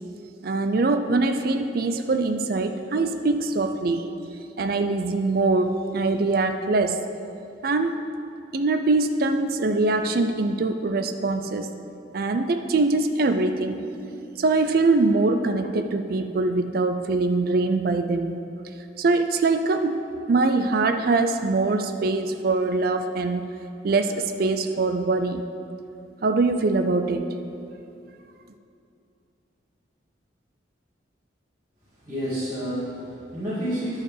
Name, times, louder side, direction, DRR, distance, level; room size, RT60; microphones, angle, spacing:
voice 1, 0.4-4.1 4.6-7.0 7.6-8.0 8.5-11.7 12.1-13.9 14.4-18.4 19.0-20.0 20.3-23.5 23.8-25.4 26.2-27.3, right 3 dB, 50° right, 8 dB, 0.4 m, -23 dB
voice 2, 31.8-34.0, equal, 20° right, -14 dB, 2.3 m, -30 dB
10.5 x 4.9 x 6.3 m, 2.6 s
head